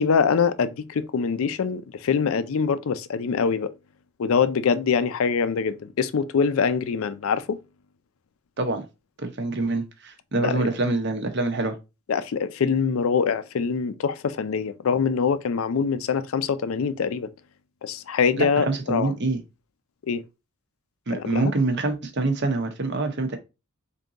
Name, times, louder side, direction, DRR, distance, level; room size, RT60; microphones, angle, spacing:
voice 1, 0.0-3.7 4.2-7.6 10.4-10.7 12.1-17.3 17.8-19.1 20.1-20.2 21.1-21.5, left 6 dB, 75° left, 0.4 m, -24 dB
voice 2, 9.2-11.8 18.4-19.4 21.1-23.4, right 2 dB, 55° right, 0.8 m, -25 dB
3.6 x 2.7 x 3.8 m
head